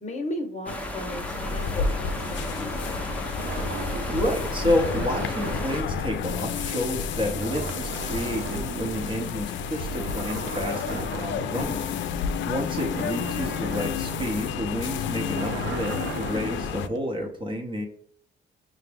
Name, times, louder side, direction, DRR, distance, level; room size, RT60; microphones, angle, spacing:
voice 1, 0.0-3.1 11.5-11.9, left 1 dB, 35° left, 4 dB, 0.9 m, -36 dB
sound 1, 0.6-7.1 7.4-9.4 9.8-17.0, right 7 dB, 70° right, 0.5 m, -39 dB
sound 2, 0.7-5.8, left 1 dB, 5° left, 0.7 m, -34 dB
sound 3, 1.2-16.9, left 6 dB, 70° left, 0.4 m, -31 dB
voice 2, 4.1-11.9 12.4-17.9, equal, 25° right, 2 dB, 0.8 m, -30 dB
5.8 x 2.0 x 3.3 m, 0.65 s
cardioid pair, 90°, 20 cm